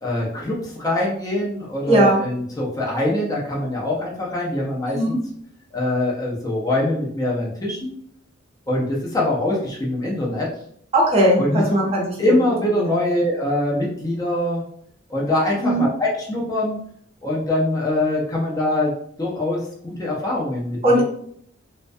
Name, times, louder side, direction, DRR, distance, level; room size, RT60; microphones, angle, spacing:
voice 1, 0.0-5.2 5.7-7.9 8.7-10.5 11.4-14.6 15.1-16.8 17.2-18.9 19.2-21.0, left 1 dB, 20° left, -4 dB, 0.6 m, -23 dB
voice 2, 1.9-2.2 4.9-5.2 10.9-12.3 12.8-12.9 15.6-15.9 20.8-21.0, right 1 dB, 30° right, -3 dB, 0.7 m, -18 dB
2.2 x 2.1 x 2.6 m, 0.65 s
head